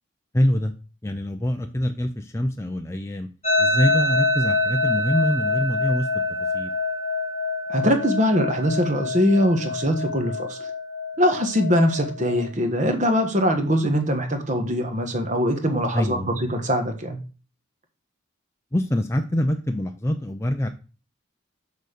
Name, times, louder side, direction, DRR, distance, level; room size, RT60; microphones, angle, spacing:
voice 1, 0.3-0.7 1.0-3.3 3.6-6.1 6.5-6.7 15.9-16.4 18.7-20.7, left 1 dB, 15° left, 4 dB, 0.5 m, -24 dB
sound 1, 3.4-12.5, left 2 dB, 30° left, 1.4 m, -26 dB
voice 2, 7.7-10.6 11.2-17.2, equal, 35° right, 5 dB, 1.4 m, -22 dB
6.6 x 5.2 x 6.6 m, 0.36 s
head